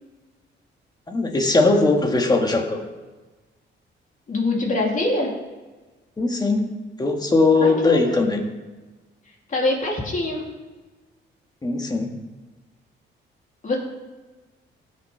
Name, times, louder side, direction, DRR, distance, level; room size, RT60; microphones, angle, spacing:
voice 1, 1.1-2.8 6.2-8.4 11.6-12.1, left 3 dB, 20° left, 3 dB, 1.7 m, -20 dB
voice 2, 4.3-5.3 7.6-8.2 9.5-10.4 13.6-13.8, left 2 dB, 40° left, -1 dB, 2.9 m, -24 dB
17.0 x 6.5 x 3.4 m, 1.3 s
cardioid pair, 90°, 20 cm